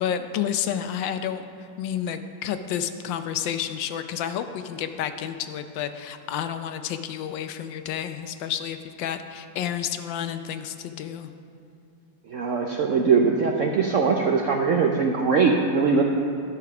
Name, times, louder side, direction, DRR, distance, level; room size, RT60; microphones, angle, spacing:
voice 1, 0.0-1.4 1.8-11.3, left 9 dB, 75° left, 9 dB, 1.3 m, -30 dB
voice 2, 12.3-16.0, right 5 dB, 70° right, 1 dB, 0.7 m, -21 dB
12.5 x 6.2 x 5.8 m, 2.7 s
omnidirectional pair, 2.1 m